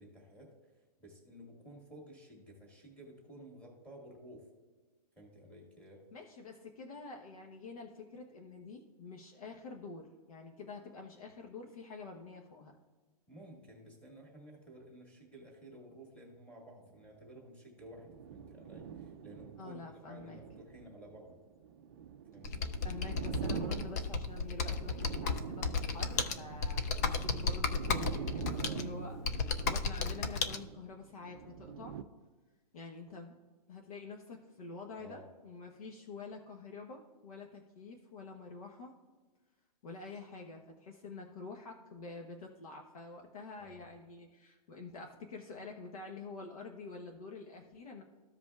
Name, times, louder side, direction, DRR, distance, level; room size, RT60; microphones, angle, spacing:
voice 1, 0.0-4.5 5.1-6.0 13.3-21.4 22.3-22.7 28.5-28.9 35.0-35.3 43.6-43.9, right 1 dB, 5° left, -2 dB, 1.9 m, -54 dB
voice 2, 6.1-12.7 19.6-20.4 22.8-32.0 32.7-33.3 33.7-38.9 39.8-48.0, left 3 dB, 65° left, 1 dB, 1.0 m, -47 dB
sound 1, 17.8-32.0, right 8 dB, 40° right, 0.4 m, -44 dB
Computer keyboard, 22.4-30.6, left 4 dB, 25° left, 0.4 m, -34 dB
14.0 x 5.1 x 2.4 m, 1.3 s
hypercardioid pair, 165°, 20 cm